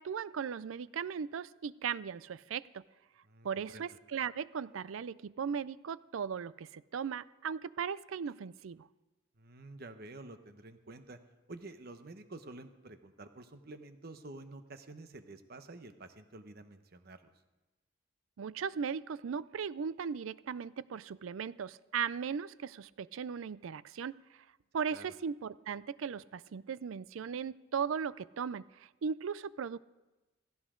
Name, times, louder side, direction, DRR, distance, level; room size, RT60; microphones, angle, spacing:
voice 1, 0.0-2.8 3.4-8.9 18.4-24.1 24.7-29.8, right 7 dB, 80° right, 19 dB, 0.4 m, -37 dB
voice 2, 3.2-3.9 9.4-11.2 11.5-17.3 24.9-25.1, right 2 dB, 50° right, 9 dB, 1.0 m, -49 dB
16.5 x 15.0 x 3.8 m, 1.1 s
head